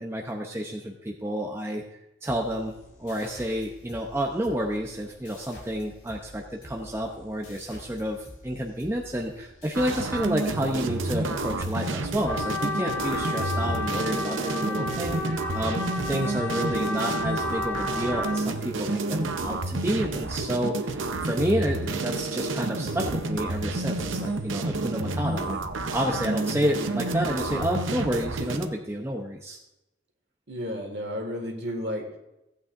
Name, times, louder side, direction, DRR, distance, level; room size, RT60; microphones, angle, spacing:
voice 1, 0.0-1.8 2.2-2.7 3.0-25.6 25.9-29.6, equal, 15° right, 1 dB, 0.6 m, -30 dB
sound 1, 2.2-11.5, left 1 dB, 80° left, 3.5 m, -48 dB
sound 2, 9.7-28.7, right 2 dB, 80° right, 0.7 m, -30 dB
Trumpet, 12.3-18.5, left 2 dB, 10° left, 1.1 m, -32 dB
voice 2, 30.5-32.2, equal, 55° right, 3 dB, 1.8 m, -32 dB
15.5 x 8.5 x 2.5 m, 0.91 s
head